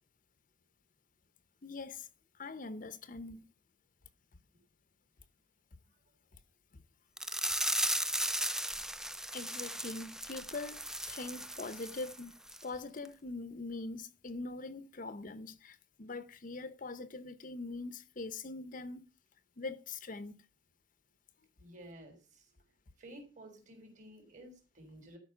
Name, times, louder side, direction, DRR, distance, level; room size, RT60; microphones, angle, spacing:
voice 1, 1.6-2.1 2.4-3.4 9.3-12.3 12.6-19.0 19.6-20.4, left 3 dB, 45° left, 0.7 m, -43 dB
sound 1, 7.2-12.2 12.5-12.6 13.0-13.1, right 1 dB, 5° right, 0.4 m, -36 dB
voice 2, 21.6-22.5 23.0-25.2, right 1 dB, 40° right, 3.9 m, -53 dB
12.5 x 5.4 x 6.7 m
head